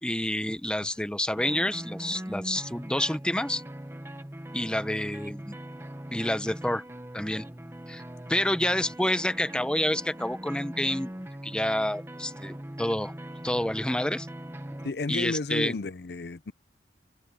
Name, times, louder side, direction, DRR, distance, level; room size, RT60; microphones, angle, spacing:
voice 1, 0.0-3.6 4.5-5.6 6.1-6.8 7.1-7.5 7.9-8.0 8.3-11.1 11.4-13.1 13.4-14.3 15.1-15.8, left 1 dB, 5° left, 0.8 m, -28 dB
sound 1, 1.3-14.9, right 1 dB, 15° right, 1.1 m, -41 dB
voice 2, 14.8-16.5, left 3 dB, 65° left, 0.6 m, -32 dB
head